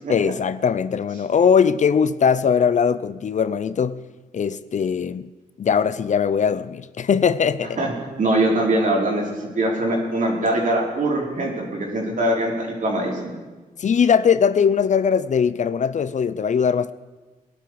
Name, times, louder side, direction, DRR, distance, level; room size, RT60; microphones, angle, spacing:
voice 1, 0.1-4.0 4.3-5.3 5.6-7.8 13.8-16.9, left 7 dB, 50° left, 0.6 m, -20 dB
voice 2, 7.8-13.3, right 1 dB, 60° right, 4.8 m, -22 dB
21.5 x 12.0 x 4.8 m
cardioid pair, 100°, 15 cm